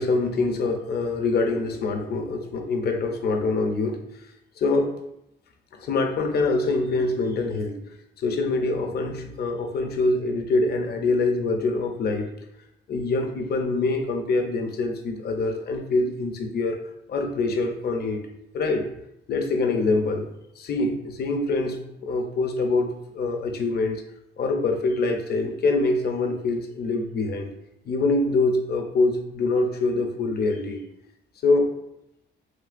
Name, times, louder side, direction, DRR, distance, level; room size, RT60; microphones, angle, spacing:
voice 1, 0.0-4.0 4.6-4.9 5.8-7.8 8.2-12.3 12.9-16.8 17.1-18.2 18.5-18.9 19.3-20.3 20.6-24.0 24.4-27.5 27.8-30.8 31.4-31.8, left 3 dB, 55° left, 4 dB, 0.5 m, -24 dB
3.2 x 2.8 x 2.4 m, 0.82 s
cardioid pair, 90°, 20 cm